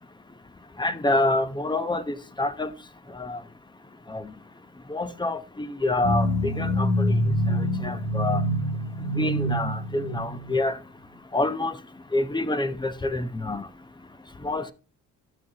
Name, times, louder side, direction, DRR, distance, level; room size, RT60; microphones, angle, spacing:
voice 1, 0.8-2.7 3.1-3.4 4.1-4.3 4.9-7.2 7.5-8.4 9.1-10.8 11.3-11.8 12.1-13.7 14.4-14.7, left 2 dB, 15° left, 0.9 m, -27 dB
sound 1, 6.0-10.6, equal, 60° left, 2.2 m, -26 dB
12.5 x 6.2 x 2.9 m
cardioid pair, 90°, 30 cm